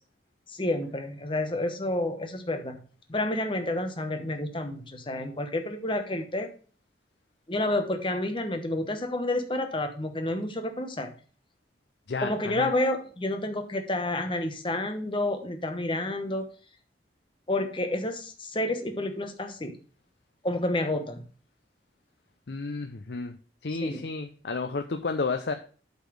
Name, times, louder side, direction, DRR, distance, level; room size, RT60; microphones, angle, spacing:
voice 1, 0.5-2.8 3.1-6.5 7.5-11.1 12.2-16.5 17.5-19.8 20.4-21.2 23.8-24.1, left 1 dB, 30° left, 6 dB, 1.1 m, -29 dB
voice 2, 12.1-12.7 22.5-25.5, left 4 dB, 75° left, 6 dB, 0.6 m, -32 dB
8.4 x 4.1 x 6.2 m, 0.40 s
head